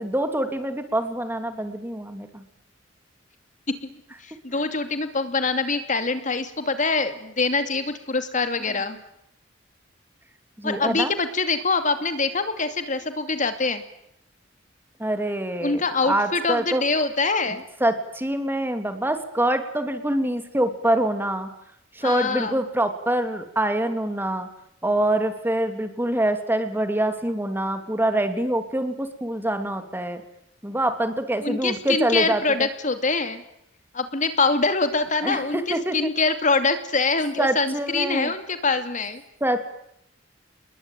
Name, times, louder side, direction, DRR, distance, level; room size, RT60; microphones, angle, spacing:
voice 1, 0.0-2.4 10.6-11.1 15.0-16.8 17.8-21.5 21.9-24.5 24.8-30.2 30.6-32.7 35.2-36.1 37.4-38.3 39.4-39.6, right 1 dB, 10° right, 8 dB, 2.8 m, -25 dB
voice 2, 4.2-9.0 10.6-13.8 15.6-17.6 22.0-22.6 31.4-33.4 33.9-39.2, left 3 dB, 40° left, 9 dB, 2.6 m, -24 dB
28.5 x 21.5 x 9.2 m, 0.77 s
head